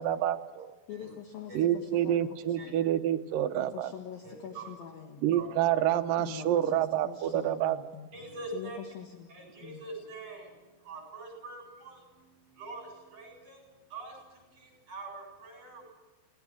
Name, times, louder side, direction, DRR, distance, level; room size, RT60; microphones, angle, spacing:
voice 1, 0.0-0.7 1.5-3.9 5.2-7.8, right 11 dB, 70° right, 6 dB, 2.1 m, -28 dB
voice 2, 0.9-2.9 3.6-5.2 6.2-8.1 8.5-9.3 9.6-9.8, left 8 dB, 65° left, 3 dB, 2.9 m, -44 dB
voice 3, 4.2-4.7 5.3-5.5 8.1-8.8 9.3-15.9, right 3 dB, 35° right, 1 dB, 9.1 m, -44 dB
28.5 x 18.5 x 6.2 m, 1.1 s
omnidirectional pair, 4.9 m